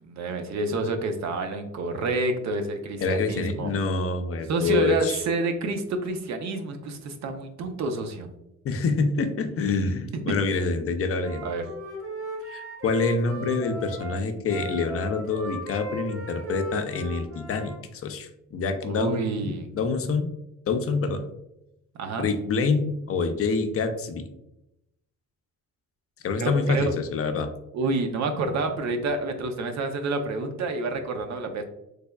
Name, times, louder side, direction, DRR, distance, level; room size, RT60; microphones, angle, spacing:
voice 1, 0.0-3.7 4.5-8.3 10.3-10.4 11.4-11.7 18.9-19.7 21.9-22.3 26.4-26.9 27.7-31.6, right 3 dB, 65° right, 6 dB, 0.6 m, -28 dB
voice 2, 3.0-5.2 8.6-11.5 12.5-20.3 20.7-21.2 22.2-24.2 26.2-27.5, left 4 dB, 50° left, 7 dB, 0.5 m, -26 dB
Wind instrument woodwind instrument, 11.2-17.8, equal, 40° right, 1.3 m, -37 dB
3.3 x 3.3 x 2.2 m, 0.86 s
cardioid pair, 90°, 30 cm